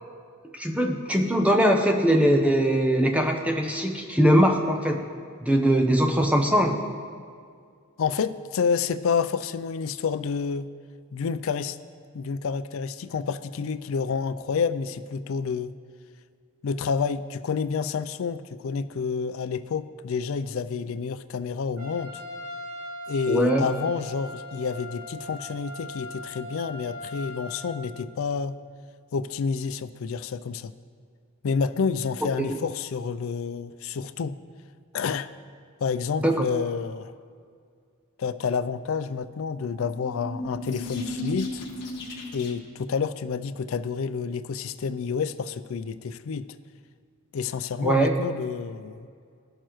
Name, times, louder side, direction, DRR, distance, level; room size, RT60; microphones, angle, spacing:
voice 1, 0.5-5.0 5.4-6.8 23.3-23.7 32.4-32.6 36.2-36.4 47.8-48.1, equal, 5° right, 2 dB, 0.7 m, -21 dB
voice 2, 8.0-10.7 11.1-11.8 12.1-15.7 16.6-22.2 23.1-28.6 29.1-30.7 31.4-34.4 34.9-35.3 35.8-37.1 38.2-41.6 42.3-46.5 47.3-49.1, left 5 dB, 65° left, 13 dB, 0.4 m, -29 dB
Trumpet, 21.8-27.8, left 1 dB, 65° right, 1.2 m, -39 dB
sound 1, 39.8-42.8, left 1 dB, 50° left, 1.3 m, -35 dB
17.0 x 6.6 x 3.0 m, 2.2 s
head